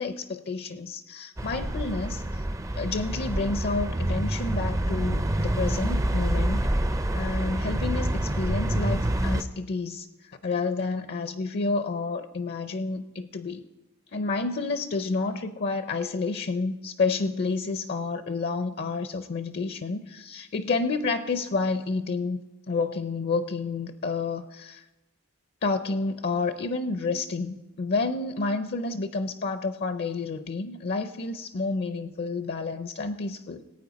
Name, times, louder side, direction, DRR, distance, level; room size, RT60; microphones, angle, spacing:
voice 1, 0.0-2.2 2.8-6.7 7.1-10.1 10.4-13.6 14.1-22.4 22.7-24.8 25.6-33.6, left 3 dB, 50° left, 10 dB, 0.5 m, -29 dB
sound 1, 1.4-9.4, right 1 dB, 15° right, 0.4 m, -27 dB
18.5 x 8.9 x 4.0 m, 1.1 s
head